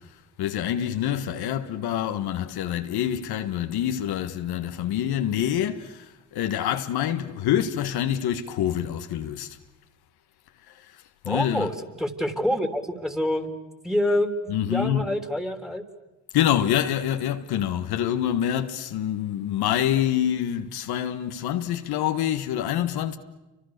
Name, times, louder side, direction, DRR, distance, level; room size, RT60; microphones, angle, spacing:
voice 1, 0.4-9.6 10.7-11.7 14.5-15.1 16.3-23.2, left 10 dB, 80° left, 1.6 m, -26 dB
voice 2, 11.3-13.6 13.8-15.8, equal, ahead, 3.4 m, -27 dB
30.0 x 25.0 x 6.7 m
supercardioid pair, 65°, 38 cm